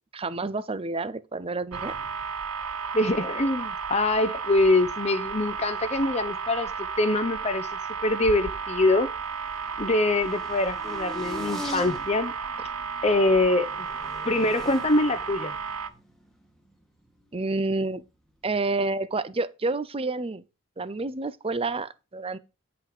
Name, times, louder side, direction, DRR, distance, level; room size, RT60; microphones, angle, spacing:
voice 1, 0.1-1.9 17.3-18.0 18.4-20.4 20.8-22.4, right 3 dB, 25° right, 0.6 m, -29 dB
sound 1, 1.7-15.9, right 5 dB, 85° right, 0.9 m, -33 dB
voice 2, 2.9-6.7 7.0-7.7 8.0-9.1 9.8-12.3 13.0-13.9 14.2-15.5, left 2 dB, 30° left, 0.8 m, -24 dB
sound 2, 4.9-5.9 6.2-7.2 7.5-17.8 18.4-18.9, left 1 dB, ahead, 1.4 m, -44 dB
10.0 x 5.8 x 5.0 m
head